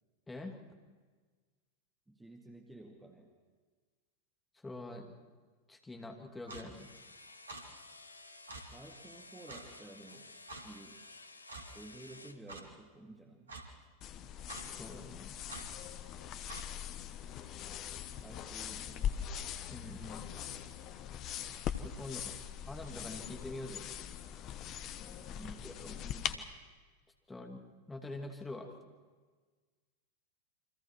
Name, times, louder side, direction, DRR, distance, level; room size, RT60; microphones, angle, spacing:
voice 1, 0.3-0.6 4.6-5.1 5.7-6.9 14.8-15.4 19.7-20.2 21.8-22.3 22.7-23.9 25.4-25.9 27.3-27.6 27.9-28.8, left 2 dB, 10° left, 3 dB, 2.7 m, -45 dB
voice 2, 2.1-3.3 8.5-11.0 11.7-13.6 18.1-19.2 22.0-22.7 25.3-26.5, right 2 dB, 5° right, 2 dB, 2.2 m, -53 dB
Clock, 6.5-6.7 7.5-7.6 8.5-8.6 9.5-9.7 10.5-10.6 11.5-11.7 12.5-12.6 13.5-13.6 14.5-14.7 15.5-15.7 16.5-16.7, right 2 dB, 70° right, 2.5 m, -46 dB
sound 1, 6.7-12.4, left 2 dB, 80° left, 1.0 m, -54 dB
sound 2, 14.0-26.4, left 9 dB, 35° left, 1.2 m, -41 dB
29.0 x 25.0 x 4.6 m, 1.4 s
figure-of-eight pair, 90°, 0 cm